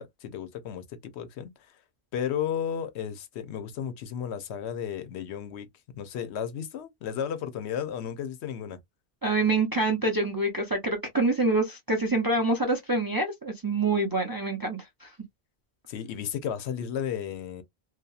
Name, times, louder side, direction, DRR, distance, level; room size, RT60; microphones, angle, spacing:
voice 1, 0.0-1.5 2.1-5.7 6.0-8.8 15.9-17.6, left 8 dB, 80° left, 0.8 m, -33 dB
voice 2, 9.2-15.1, right 2 dB, 30° right, 0.4 m, -26 dB
2.7 x 2.2 x 2.3 m
omnidirectional pair, 1.1 m